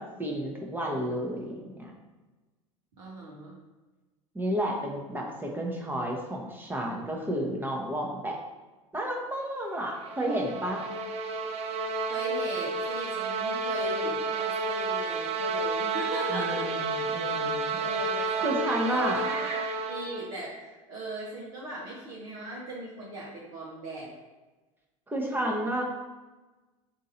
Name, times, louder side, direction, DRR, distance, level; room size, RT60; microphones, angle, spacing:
voice 1, 0.0-1.9 4.3-8.4 8.9-10.8 16.3-17.8 18.4-19.2 25.1-25.8, equal, 10° right, 0 dB, 0.9 m, -31 dB
voice 2, 3.0-3.6 12.1-16.7 17.7-19.6 19.9-24.1, right 2 dB, 65° right, -5 dB, 0.9 m, -39 dB
sound 1, 9.8-20.4, right 3 dB, 40° right, 0.5 m, -31 dB
3.7 x 2.7 x 4.2 m, 1.2 s
hypercardioid pair, 75°, 17 cm